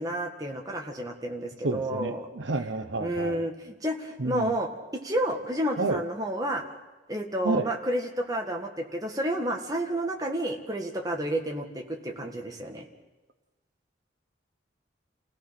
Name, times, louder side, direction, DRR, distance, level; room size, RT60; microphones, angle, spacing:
voice 1, 0.0-2.3 3.0-6.6 7.1-12.9, right 1 dB, 20° right, 2 dB, 1.9 m, -30 dB
voice 2, 1.6-3.5 4.2-4.5 5.8-6.0 7.4-7.7, right 3 dB, 80° right, 10 dB, 0.9 m, -30 dB
28.5 x 17.0 x 5.9 m, 1.1 s
head